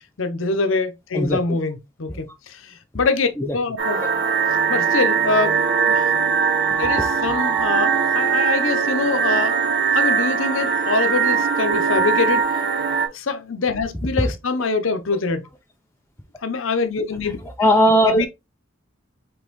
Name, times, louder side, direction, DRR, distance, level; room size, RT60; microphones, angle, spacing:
voice 1, 0.2-4.0 4.7-5.6 5.9-6.1 6.8-9.6 9.9-12.5 13.1-15.5 16.4-17.4 18.1-18.3, left 3 dB, 70° left, 0.8 m, -24 dB
voice 2, 1.1-1.6 3.3-3.6 10.9-11.1 11.9-12.0 12.6-12.7 14.0-14.3 14.6-14.7 15.1-15.2 17.2-18.3, equal, 10° left, 0.5 m, -20 dB
sound 1, 3.8-13.1, right 6 dB, 55° right, 1.2 m, -20 dB
5.2 x 3.4 x 3.0 m
head